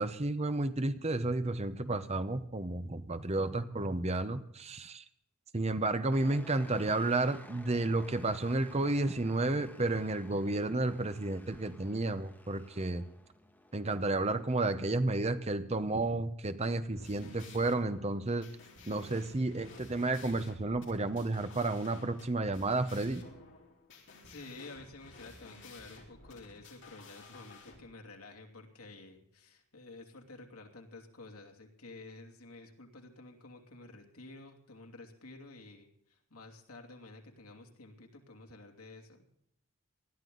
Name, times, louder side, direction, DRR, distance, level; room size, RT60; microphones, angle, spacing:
voice 1, 0.0-5.0 5.5-13.1 13.7-18.5 18.9-23.3, right 2 dB, 30° right, 11 dB, 0.8 m, -32 dB
sound 1, 6.1-14.8, left 1 dB, 10° left, 2.1 m, -56 dB
sound 2, 16.8-27.8, left 3 dB, 55° left, 3.6 m, -54 dB
voice 2, 17.2-17.9 24.2-39.3, left 2 dB, 80° left, 2 dB, 2.9 m, -51 dB
20.0 x 13.5 x 4.0 m, 0.72 s
head